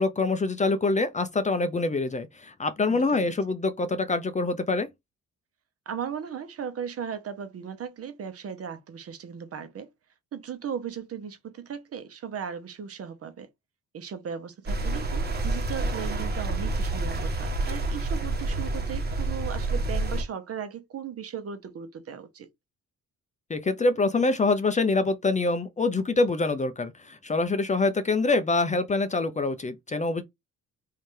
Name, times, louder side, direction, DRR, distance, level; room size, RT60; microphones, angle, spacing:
voice 1, 0.0-4.9 23.5-30.2, left 3 dB, 25° left, 0.5 m, -25 dB
voice 2, 2.9-3.3 5.9-9.9 10.3-13.5 13.9-22.5, right 7 dB, 50° right, 1.0 m, -37 dB
sound 1, 14.7-20.2, right 2 dB, 30° right, 1.3 m, -28 dB
3.3 x 2.8 x 3.1 m
cardioid pair, 90°, 30 cm